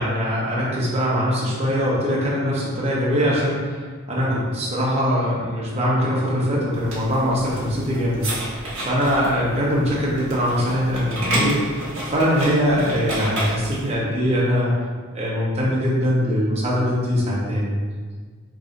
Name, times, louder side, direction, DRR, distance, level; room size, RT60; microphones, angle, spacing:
voice 1, 0.0-3.8 4.1-14.7 15.1-17.7, equal, 30° right, -5 dB, 0.8 m, -22 dB
sound 1, 6.7-13.9, right 1 dB, 60° right, 1.4 m, -30 dB
4.8 x 2.6 x 2.5 m, 1.5 s
head